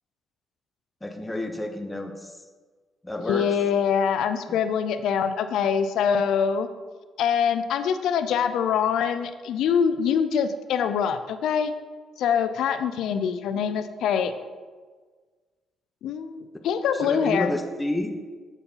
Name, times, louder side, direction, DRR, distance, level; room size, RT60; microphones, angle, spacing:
voice 1, 1.0-2.4 3.0-3.4 13.5-13.8 16.9-18.1, left 1 dB, 10° left, 4 dB, 0.7 m, -30 dB
voice 2, 3.3-6.7 7.2-11.7 12.2-14.3 16.0-17.5, left 7 dB, 80° left, 10 dB, 0.4 m, -24 dB
6.9 x 4.6 x 5.5 m, 1.4 s
cardioid pair, 90°, 0 cm